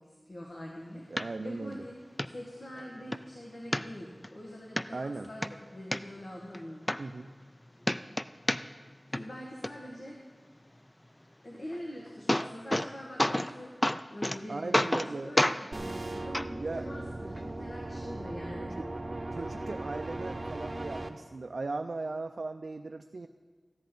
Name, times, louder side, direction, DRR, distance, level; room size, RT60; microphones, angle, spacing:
voice 1, 0.0-2.0 2.2-6.8 9.1-10.2 11.4-13.7 14.1-18.8, equal, 70° left, -2 dB, 1.5 m, -44 dB
voice 2, 1.1-1.8 4.9-5.3 7.0-7.3 14.5-15.3 16.6-16.9 19.3-23.3, right 3 dB, 80° right, 6 dB, 0.3 m, -37 dB
sound 1, 1.2-1.3 1.7-1.8 2.2-2.3 2.8-3.2 3.7-4.3 4.8-4.9 5.2-6.0 6.5-6.6 6.9-7.6 7.8-8.9 9.1-9.7 11.7-11.8 12.1-12.9 13.2-13.5 13.8-14.4 14.7-15.1 15.4-15.6 16.3-16.5 17.4-17.5, left 1 dB, 20° left, 0.3 m, -28 dB
sound 2, 15.7-21.1, right 2 dB, 50° right, 0.7 m, -38 dB
14.0 x 10.5 x 3.9 m, 1.4 s
wide cardioid pair, 65°, 0 cm